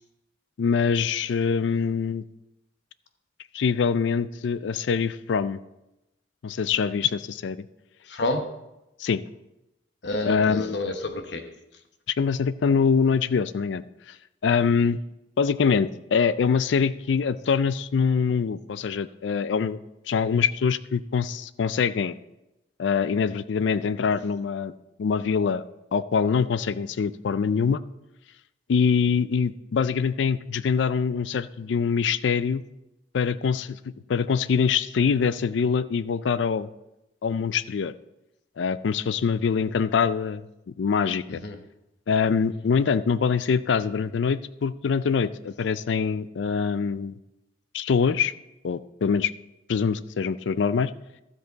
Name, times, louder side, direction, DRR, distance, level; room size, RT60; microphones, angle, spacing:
voice 1, 0.6-2.2 3.5-5.6 6.4-7.6 9.0-9.2 10.2-10.8 12.2-14.2 14.4-15.0 15.4-19.8 20.1-22.1 22.8-24.7 25.0-25.6 25.9-27.8 28.7-32.6 33.1-33.8 34.1-36.7 37.2-37.9 38.6-40.4 40.8-41.4 42.1-47.1 47.7-48.3 48.6-49.3 49.7-50.9, left 6 dB, 90° left, 16 dB, 0.4 m, -24 dB
voice 2, 8.1-8.5 10.0-11.5 41.3-41.6, left 2 dB, 75° left, 7 dB, 1.0 m, -29 dB
12.5 x 7.8 x 4.0 m, 0.92 s
head